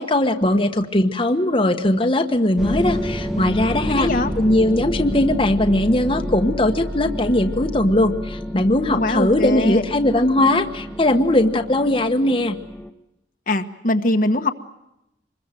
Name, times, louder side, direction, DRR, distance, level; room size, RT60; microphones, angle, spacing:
voice 1, 0.0-4.1 4.4-12.6, left 1 dB, 30° left, 5 dB, 1.2 m, -19 dB
sound 1, 2.6-12.9, equal, ahead, 1.3 m, -29 dB
voice 2, 4.0-4.3 8.9-9.8 13.5-14.5, left 2 dB, 45° left, 6 dB, 1.3 m, -21 dB
26.0 x 21.5 x 9.1 m, 0.89 s
head